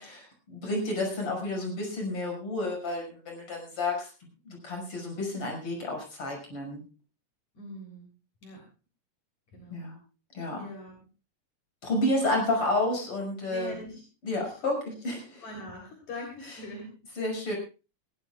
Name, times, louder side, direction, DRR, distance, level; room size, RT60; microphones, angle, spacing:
voice 1, 0.0-4.1 4.5-6.8 9.7-10.0 10.3-10.7 11.8-13.7 14.2-14.8 15.0-15.2 17.2-17.5, left 2 dB, 45° left, 1 dB, 6.9 m, -30 dB
voice 2, 7.5-8.1 8.4-8.6 9.5-9.9 10.6-11.0 12.0-12.4 13.5-14.0 14.4-14.9 15.4-17.0, left 1 dB, 65° left, 1 dB, 5.0 m, -42 dB
20.5 x 17.5 x 2.4 m, 0.32 s
omnidirectional pair, 3.6 m